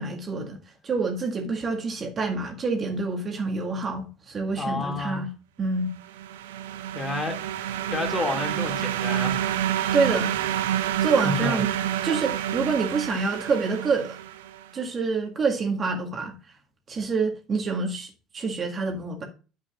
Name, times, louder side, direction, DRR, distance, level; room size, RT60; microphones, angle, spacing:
voice 1, 0.0-5.3 5.6-5.9 9.9-10.3 11.0-11.7 12.0-14.2 14.7-16.3 16.9-19.2, right 4 dB, 35° right, 1.8 m, -27 dB
voice 2, 4.6-5.2 6.9-7.4 7.9-9.5 11.2-11.6, left 3 dB, 25° left, 2.2 m, -30 dB
sound 1, 6.0-14.6, right 11 dB, 70° right, 0.7 m, -28 dB
11.0 x 8.0 x 2.4 m
figure-of-eight pair, 60°, 0 cm